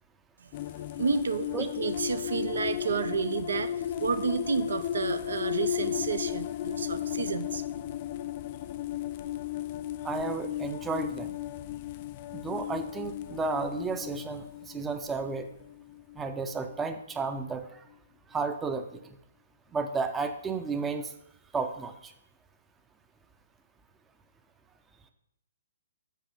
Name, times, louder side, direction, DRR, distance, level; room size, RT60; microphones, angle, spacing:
sound 1, 0.5-17.0, left 12 dB, 40° left, 0.3 m, -35 dB
voice 1, 0.7-3.7 4.0-7.6, right 5 dB, 70° right, 11 dB, 0.5 m, -31 dB
voice 2, 10.0-11.3 12.3-15.5 16.2-17.8 18.3-19.0 19.7-21.1 21.5-22.1, right 4 dB, 15° right, 7 dB, 0.6 m, -32 dB
7.3 x 4.8 x 5.3 m, 0.76 s
figure-of-eight pair, 125°, 0 cm